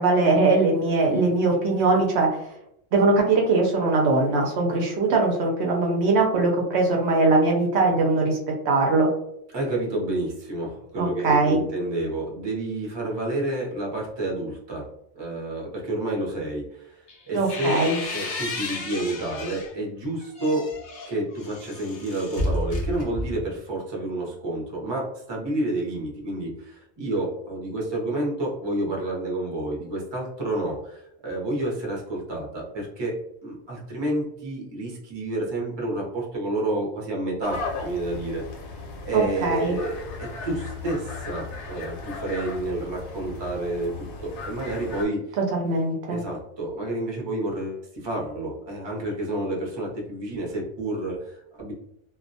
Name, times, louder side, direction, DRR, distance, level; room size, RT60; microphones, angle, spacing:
voice 1, 0.0-2.3 2.9-8.4 8.6-9.1 11.0-11.6 17.3-18.0 39.1-39.8 45.5-46.2, right 3 dB, 70° right, 0 dB, 0.8 m, -21 dB
voice 2, 9.5-14.9 15.1-17.8 18.1-20.7 21.1-33.1 33.4-38.8 39.0-45.4 46.1-51.7, right 1 dB, 30° right, -3 dB, 0.6 m, -29 dB
sound 1, 17.1-19.7 20.2-23.5, left 2 dB, 55° left, 0.4 m, -32 dB
sound 2, 37.4-45.0, left 4 dB, 75° left, 0.8 m, -36 dB
2.2 x 2.1 x 2.6 m, 0.78 s
omnidirectional pair, 1.2 m